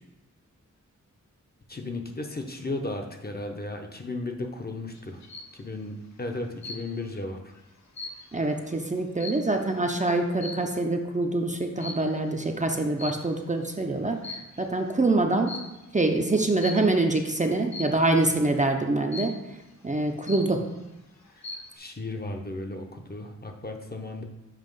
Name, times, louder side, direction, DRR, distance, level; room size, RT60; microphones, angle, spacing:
voice 1, 1.7-5.2 5.5-7.5 21.8-24.2, left 2 dB, 30° left, 3 dB, 0.7 m, -35 dB
sound 1, 4.9-5.6 6.6-7.2 7.5-9.8 10.4-10.8 11.8-12.2 13.0-13.6 14.1-14.8 15.5-15.8 16.6-17.0 17.7-18.1 19.1-19.6 20.0-20.1 20.3-20.9 21.2-21.8, left 3 dB, 60° left, 0.9 m, -40 dB
voice 2, 8.3-15.5 15.9-19.3 19.8-20.6, right 2 dB, 25° right, 3 dB, 0.5 m, -25 dB
7.4 x 2.9 x 5.3 m, 0.99 s
wide cardioid pair, 80°, 31 cm